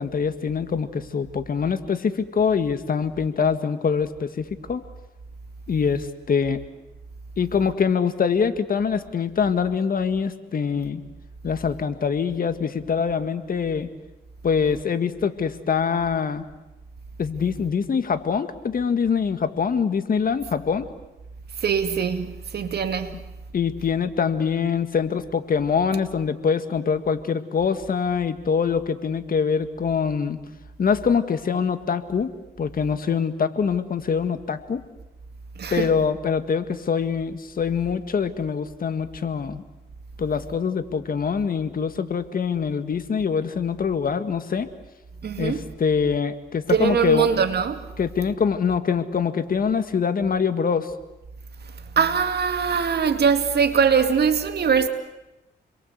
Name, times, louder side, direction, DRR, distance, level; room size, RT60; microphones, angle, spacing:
voice 1, 0.0-4.8 5.7-6.6 7.4-11.0 11.4-13.9 14.4-16.4 17.2-20.9 23.5-30.4 30.8-32.3 32.6-34.8 35.7-39.6 40.2-44.7 45.4-47.3 48.0-50.9, left 6 dB, 50° left, 1.9 m, -24 dB
voice 2, 21.6-23.2 35.6-35.9 45.2-45.7 46.7-47.8 52.0-54.9, right 6 dB, 65° right, 2.4 m, -22 dB
29.5 x 22.5 x 8.2 m
cardioid pair, 90°, 18 cm